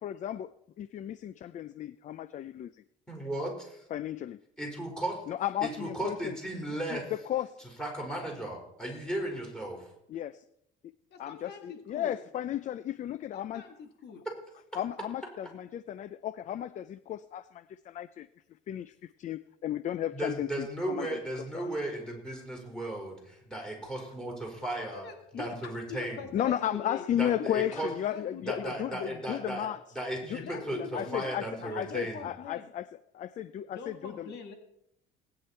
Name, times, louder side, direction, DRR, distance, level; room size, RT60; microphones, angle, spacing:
voice 1, 0.0-2.8 3.9-4.4 5.3-6.3 6.9-7.6 10.1-10.4 11.2-13.6 14.8-18.3 18.7-21.2 21.5-21.7 26.3-29.8 30.3-32.9 33.1-34.3, left 11 dB, 40° left, 16 dB, 0.5 m, -34 dB
voice 2, 3.1-3.8 4.6-5.1 5.6-7.1 7.8-9.9 20.1-25.0 25.3-26.3 27.2-27.9 28.4-29.7 29.9-32.3, right 1 dB, 5° left, -1 dB, 5.0 m, -36 dB
voice 3, 11.1-12.1 13.3-14.2 24.9-27.0 27.4-28.7 30.4-32.7 33.7-34.5, left 5 dB, 55° left, 4 dB, 2.1 m, -44 dB
19.5 x 9.8 x 4.4 m, 0.77 s
cardioid pair, 130°, 20 cm